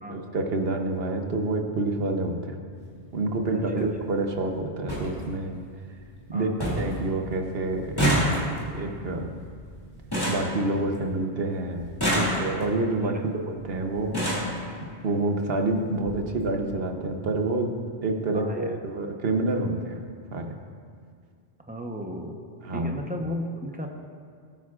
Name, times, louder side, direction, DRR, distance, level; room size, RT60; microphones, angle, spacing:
voice 1, 0.1-2.6 3.1-5.6 6.3-6.5 6.8-8.0 8.7-9.3 10.3-13.2 13.5-14.5 15.0-17.7 18.0-20.0 20.3-20.6 22.6-22.9, right 2 dB, 60° right, 4 dB, 1.1 m, -28 dB
sound 1, 2.7-2.9 4.2-4.3 4.5-4.6 4.9-5.1 5.5-6.0 6.3-6.4 6.6-7.0 7.2-11.2 11.8-12.8 13.6-13.7 14.0-14.6 15.5-15.6 15.9-16.1 16.4-16.5, equal, 20° left, 2.6 m, -27 dB
voice 2, 3.5-3.9 6.3-6.6 13.1-13.2 18.3-18.8 21.7-22.4 22.7-23.9, equal, 10° right, 2 dB, 0.8 m, -34 dB
19.5 x 9.3 x 2.5 m, 2.1 s
omnidirectional pair, 1.1 m